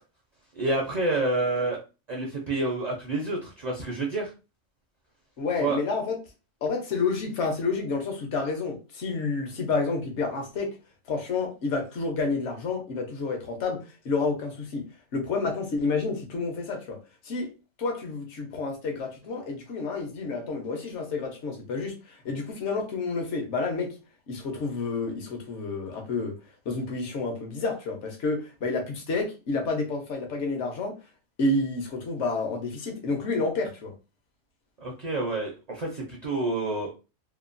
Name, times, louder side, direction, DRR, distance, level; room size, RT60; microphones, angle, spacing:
voice 1, 0.5-1.8 2.1-4.3 5.6-5.8 34.8-36.9, right 2 dB, 50° right, 0 dB, 0.5 m, -28 dB
voice 2, 5.4-6.2 6.6-10.8 11.1-14.9 15.1-17.0 17.2-17.5 17.8-23.9 24.3-26.4 26.7-30.9 31.4-33.9, left 3 dB, 70° left, 3 dB, 1.0 m, -29 dB
2.9 x 2.2 x 2.5 m, 0.30 s
omnidirectional pair, 1.3 m